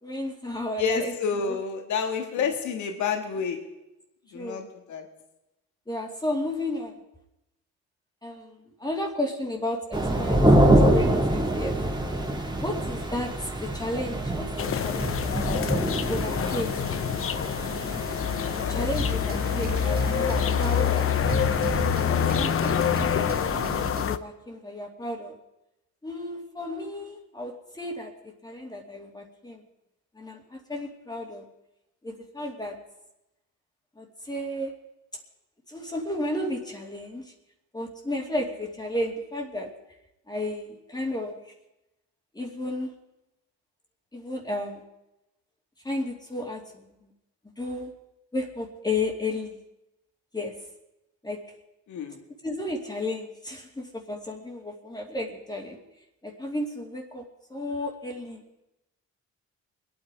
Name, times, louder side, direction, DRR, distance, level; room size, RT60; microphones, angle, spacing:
voice 1, 0.0-1.6 2.4-2.5 4.3-4.7 5.9-7.0 8.2-11.8 12.6-15.3 15.9-16.8 17.7-17.9 18.7-21.1 22.0-23.3 24.1-25.4 26.0-29.6 30.1-31.5 32.0-32.8 34.0-34.8 35.7-37.3 37.7-39.7 40.3-41.5 42.3-43.0 44.1-44.8 45.8-47.1 47.6-47.9 48.3-49.6 50.3-50.6 51.2-51.4 52.4-55.8 56.2-58.4, left 1 dB, 15° left, 1 dB, 2.4 m, -33 dB
voice 2, 0.8-3.7 4.3-5.1 18.3-18.7 51.9-52.2, left 6 dB, 70° left, 5 dB, 1.7 m, -29 dB
sound 1, 9.9-23.9, right 1 dB, 15° right, 2.3 m, -26 dB
sound 2, 14.6-24.2, left 9 dB, 45° left, 0.8 m, -26 dB
sound 3, 18.8-24.1, right 5 dB, 30° right, 1.1 m, -36 dB
23.5 x 9.5 x 4.8 m, 0.91 s
cardioid pair, 90°, 30 cm